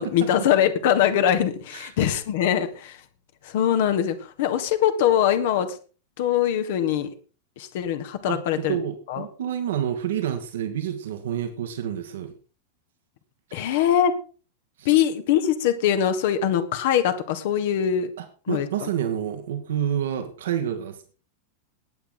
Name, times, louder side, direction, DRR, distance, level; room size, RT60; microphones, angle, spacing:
voice 1, 0.0-3.0 3.4-5.7 6.2-7.1 7.6-8.8 9.1-9.2 13.5-14.1 14.8-18.1 18.5-18.7, left 10 dB, 55° left, 9 dB, 1.6 m, -22 dB
voice 2, 8.3-12.3 13.5-13.8 14.8-14.9 18.2-21.1, right 10 dB, 60° right, 7 dB, 1.6 m, -29 dB
19.5 x 8.6 x 4.0 m, 0.38 s
figure-of-eight pair, 90°, 0 cm